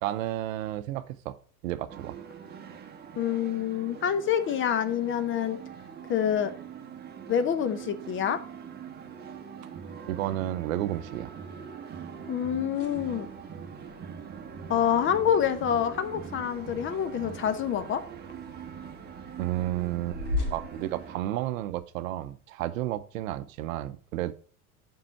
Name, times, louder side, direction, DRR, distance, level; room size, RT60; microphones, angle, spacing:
voice 1, 0.0-1.4 1.6-2.2 10.1-11.3 19.4-20.2 20.5-24.3, right 14 dB, 60° right, 0.7 m, -32 dB
sound 1, 1.9-21.2, right 7 dB, 20° right, 1.1 m, -43 dB
voice 2, 3.2-5.6 6.1-6.5 7.3-8.4 12.3-13.3 14.7-18.0, left 9 dB, 25° left, 0.8 m, -27 dB
sound 2, 12.7-21.8, left 2 dB, 85° left, 3.8 m, -41 dB
7.5 x 5.5 x 4.4 m
hypercardioid pair, 85°, 44 cm